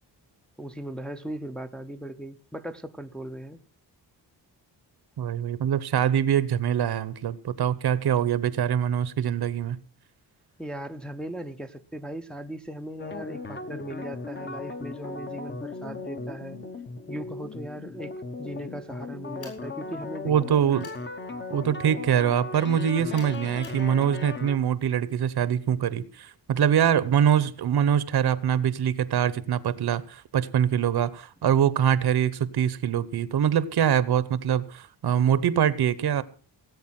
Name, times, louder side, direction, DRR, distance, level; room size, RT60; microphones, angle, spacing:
voice 1, 0.6-3.6 10.6-16.6 17.1-20.5, right 1 dB, ahead, 0.6 m, -38 dB
voice 2, 5.2-9.8 20.2-20.9 21.5-36.2, right 9 dB, 65° right, 0.9 m, -24 dB
sound 1, 13.0-24.6, left 3 dB, 25° left, 0.9 m, -37 dB
sound 2, 19.4-19.7 20.8-21.0 23.1-23.8, left 4 dB, 60° left, 7.6 m, -48 dB
18.0 x 8.4 x 5.9 m
wide cardioid pair, 165°, 42 cm